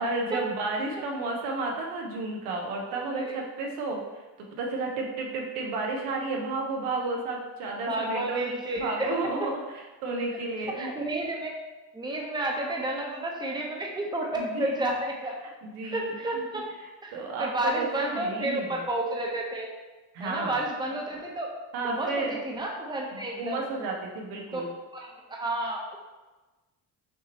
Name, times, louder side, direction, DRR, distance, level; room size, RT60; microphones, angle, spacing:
voice 1, 0.0-11.0 14.4-14.9 15.6-16.4 17.1-18.9 20.1-20.6 21.7-22.4 23.2-24.7, right 3 dB, 80° right, 0 dB, 1.0 m, -32 dB
voice 2, 2.9-3.3 7.9-9.1 10.7-11.5 11.9-15.4 15.9-16.6 17.0-17.1 17.4-19.7 20.2-21.5 21.8-23.7 24.5-24.6 24.9-26.0, right 1 dB, 10° right, -1 dB, 0.9 m, -31 dB
5.6 x 3.0 x 2.9 m, 1.2 s
supercardioid pair, 80°, 48 cm